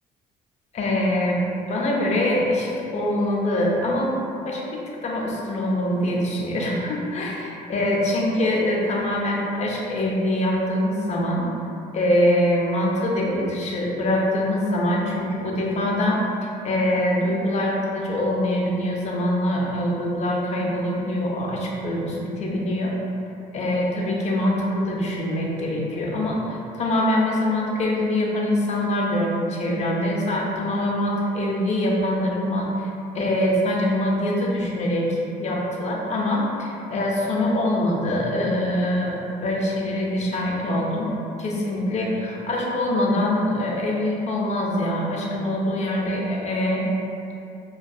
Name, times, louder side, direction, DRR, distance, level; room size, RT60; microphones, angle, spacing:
voice 1, 0.7-1.4 1.7-4.2 4.4-11.5 11.9-16.2 16.6-22.9 23.5-32.9 33.1-46.9, left 1 dB, 40° left, -2 dB, 0.5 m, -24 dB
2.5 x 2.2 x 2.2 m, 2.6 s
cardioid pair, 110°, 17 cm